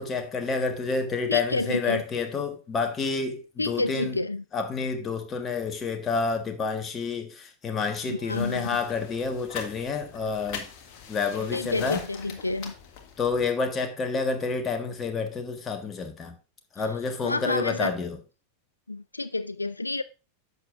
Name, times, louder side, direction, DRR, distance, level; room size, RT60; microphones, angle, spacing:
voice 1, 0.0-4.1 4.5-10.7 11.1-12.0 13.2-16.3 16.7-18.2, left 4 dB, 20° left, 1.5 m, -29 dB
voice 2, 1.3-2.0 3.6-4.4 8.0-8.8 11.5-12.7 16.8-16.9 17.2-17.9 18.9-20.0, left 2 dB, 80° left, 0.3 m, -29 dB
sound 1, 8.3-13.5, left 6 dB, 45° left, 1.5 m, -42 dB
10.5 x 6.9 x 2.5 m
figure-of-eight pair, 90°, 0 cm